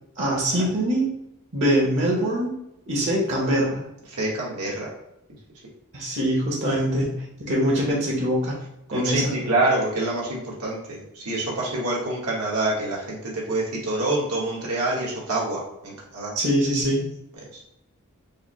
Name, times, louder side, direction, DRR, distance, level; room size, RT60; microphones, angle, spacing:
voice 1, 0.2-1.1 1.5-2.5 2.9-3.8 5.9-8.6 8.9-9.4 16.3-17.1, equal, 55° right, -2 dB, 1.0 m, -23 dB
voice 2, 4.2-4.8 8.9-11.0 11.2-13.2 13.5-16.3, right 2 dB, 85° right, -4 dB, 1.4 m, -26 dB
4.8 x 2.1 x 3.1 m, 0.82 s
head